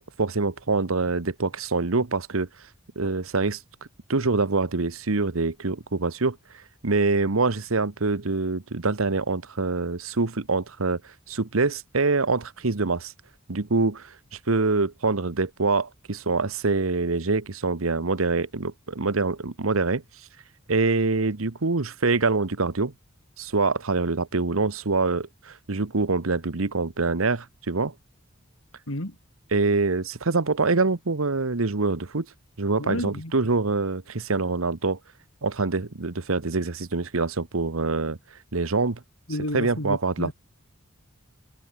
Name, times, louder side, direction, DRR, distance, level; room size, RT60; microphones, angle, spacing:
voice 1, 0.0-2.5 2.9-3.6 4.1-6.4 6.8-11.0 11.3-13.1 13.5-20.0 20.7-22.9 23.4-27.9 29.5-32.3 32.6-35.0 35.4-38.2 38.5-39.0 39.5-40.3, right 3 dB, 90° right, 1.2 m, -25 dB
voice 2, 28.9-29.2 32.8-33.3 39.3-40.3, left 1 dB, 75° left, 4.4 m, -31 dB
head